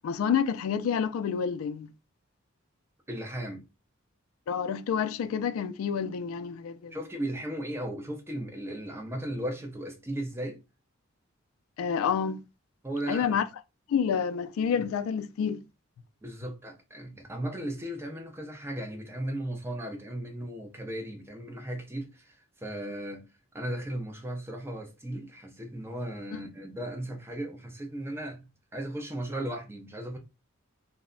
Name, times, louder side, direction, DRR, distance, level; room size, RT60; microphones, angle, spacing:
voice 1, 0.0-1.9 4.5-7.0 11.8-12.4 13.1-13.5 13.9-15.6, left 7 dB, 80° left, 0.3 m, -28 dB
voice 2, 3.1-3.6 6.9-10.6 12.8-13.4 16.2-23.3 23.5-30.2, right 1 dB, 10° right, 0.5 m, -36 dB
2.1 x 2.0 x 3.6 m
head